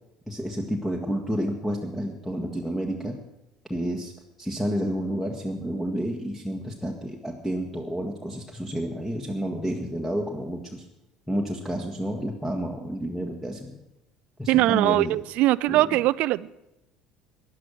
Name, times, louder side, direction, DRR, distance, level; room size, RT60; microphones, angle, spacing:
voice 1, 0.3-3.2 3.7-4.1 4.4-10.9 11.3-13.7 14.4-15.1 15.7-16.0, equal, 5° left, 1 dB, 1.7 m, -30 dB
voice 2, 14.5-16.5, right 17 dB, 55° right, 20 dB, 0.4 m, -21 dB
13.0 x 11.0 x 6.3 m, 0.92 s
figure-of-eight pair, 60°, 3 cm